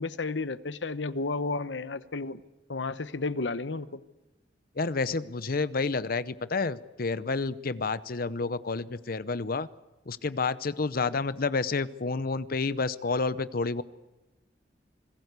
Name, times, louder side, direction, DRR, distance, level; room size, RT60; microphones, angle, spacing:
voice 1, 0.0-2.4 2.7-4.0, left 3 dB, 80° left, 15 dB, 1.0 m, -32 dB
voice 2, 4.8-9.7 10.1-13.8, left 4 dB, 55° left, 16 dB, 0.7 m, -29 dB
26.5 x 20.0 x 8.2 m, 1.1 s
head